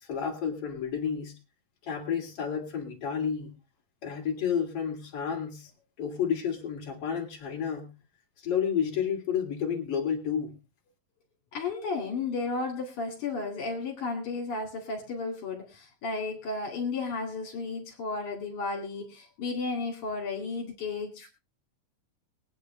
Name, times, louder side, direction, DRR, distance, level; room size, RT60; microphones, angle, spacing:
voice 1, 0.1-1.3 1.8-3.5 4.0-5.7 6.0-7.9 8.4-10.5, left 7 dB, 45° left, 0 dB, 3.8 m, -30 dB
voice 2, 11.5-21.3, left 3 dB, 70° left, 1 dB, 3.7 m, -33 dB
23.0 x 9.1 x 3.2 m, 0.29 s
omnidirectional pair, 3.6 m